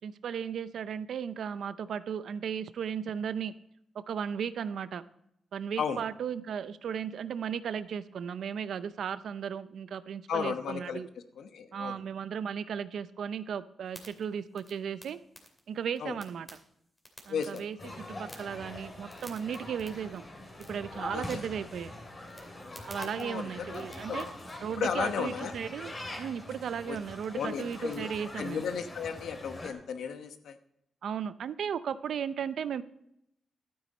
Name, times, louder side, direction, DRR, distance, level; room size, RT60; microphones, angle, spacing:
voice 1, 0.0-3.5 3.9-5.0 5.5-11.1 11.7-15.2 15.7-16.5 17.3-20.2 20.7-21.9 22.9-24.3 24.6-25.9 26.2-28.7 31.0-32.8, right 7 dB, 70° right, 14 dB, 0.6 m, -35 dB
voice 2, 10.3-11.0 11.4-12.0 16.0-16.2 17.3-17.9 21.1-21.4 23.0-23.8 24.1-24.3 24.8-25.5 26.8-27.0 27.3-28.1 28.4-30.6, left 6 dB, 80° left, 8 dB, 1.1 m, -34 dB
sound 1, 13.8-24.6, equal, 10° left, 2.5 m, -55 dB
sound 2, 17.8-29.7, left 1 dB, 25° left, 2.7 m, -43 dB
12.5 x 9.3 x 4.2 m, 0.76 s
wide cardioid pair, 135°, 0 cm